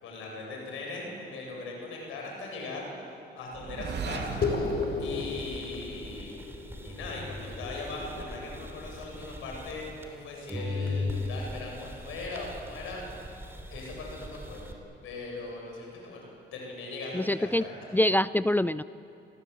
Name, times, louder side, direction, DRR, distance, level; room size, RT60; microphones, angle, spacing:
voice 1, 0.0-2.9 3.3-4.4 5.0-6.3 6.8-13.3 13.7-14.7 15.0-17.8, left 2 dB, 85° left, -1 dB, 7.8 m, -39 dB
sound 1, 3.5-6.4, right 5 dB, 60° right, 2.8 m, -37 dB
sound 2, 4.4-9.2, left 4 dB, 50° left, 4.1 m, -35 dB
sound 3, 5.2-10.2 10.5-14.7, left 2 dB, 10° right, 3.2 m, -39 dB
voice 2, 17.1-17.6 17.9-18.8, left 1 dB, 10° left, 16 dB, 0.5 m, -25 dB
29.0 x 18.0 x 8.4 m, 3.0 s
cardioid pair, 90°, 20 cm